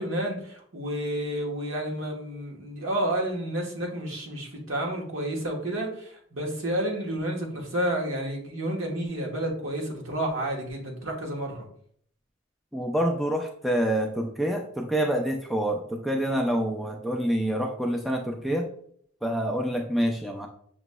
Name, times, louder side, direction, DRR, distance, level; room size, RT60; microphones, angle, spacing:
voice 1, 0.0-11.7, right 1 dB, 75° right, 0 dB, 1.1 m, -30 dB
voice 2, 12.7-18.6 19.2-20.5, right 1 dB, ahead, 1 dB, 0.3 m, -27 dB
5.9 x 3.1 x 2.2 m, 0.62 s
head